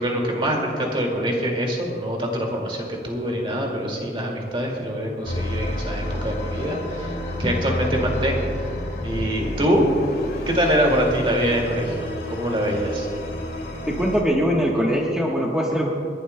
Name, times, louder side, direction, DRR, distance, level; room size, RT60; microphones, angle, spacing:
voice 1, 0.0-8.7 9.0-9.9 10.5-13.1, equal, 30° right, 0 dB, 2.2 m, -24 dB
sound 1, 5.3-14.2, left 1 dB, 60° left, 2.1 m, -30 dB
voice 2, 13.9-15.9, equal, 5° right, -4 dB, 1.1 m, -22 dB
29.0 x 11.5 x 2.2 m, 2.7 s
head